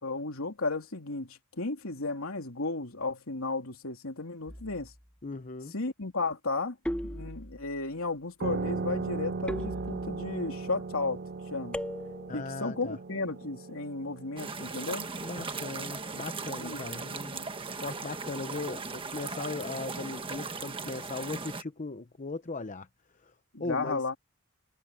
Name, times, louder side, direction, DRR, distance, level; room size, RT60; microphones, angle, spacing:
voice 1, 0.0-4.9 5.7-6.8 7.0-11.2 11.5-11.8 12.3-15.1 16.6-16.8 17.3-17.5 23.5-24.2, left 3 dB, 85° left, 3.2 m, -34 dB
clangs cartoon, 4.5-5.0 6.9-7.8 9.5-10.4 11.7-12.5, equal, 5° left, 2.1 m, -37 dB
voice 2, 5.2-5.7 12.3-13.0 15.2-22.9 23.2-23.3 23.6-24.0, left 3 dB, 40° left, 0.8 m, -38 dB
sound 1, 8.4-17.6, right 4 dB, 50° right, 0.5 m, -38 dB
sound 2, 14.4-21.6, right 4 dB, 25° right, 1.4 m, -38 dB
head